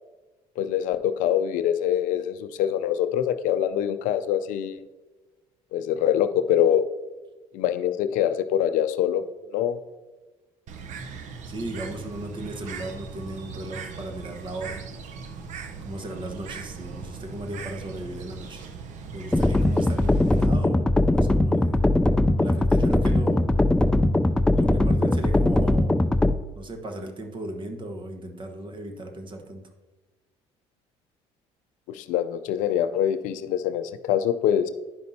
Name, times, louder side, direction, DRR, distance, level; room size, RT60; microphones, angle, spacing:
voice 1, 0.6-4.8 5.7-6.8 7.5-9.2 9.5-9.8 31.9-34.7, left 10 dB, 75° left, 12 dB, 0.4 m, -24 dB
Bird, 10.7-20.5, right 5 dB, 60° right, 0.7 m, -39 dB
voice 2, 11.5-14.8 15.8-18.7 19.1-21.8 22.4-23.5 24.5-26.0 26.6-29.7, right 1 dB, 35° right, 6 dB, 1.1 m, -36 dB
sound 1, 19.3-26.3, left 1 dB, 5° left, 0.3 m, -20 dB
11.0 x 5.2 x 2.7 m, 1.2 s
supercardioid pair, 80°, 14 cm